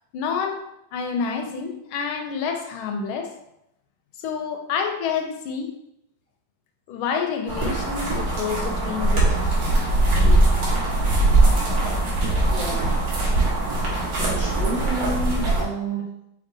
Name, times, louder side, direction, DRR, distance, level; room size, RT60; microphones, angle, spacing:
voice 1, 0.1-0.6 0.9-3.3 4.2-5.7 6.9-9.5 10.2-10.4, left 6 dB, 80° left, 5 dB, 1.4 m, -28 dB
sound 1, 7.5-15.6, right 2 dB, 65° right, 1.7 m, -21 dB
voice 2, 12.5-13.0 14.2-16.3, right 2 dB, 30° right, -7 dB, 0.7 m, -30 dB
5.3 x 3.1 x 2.6 m, 0.81 s
omnidirectional pair, 2.3 m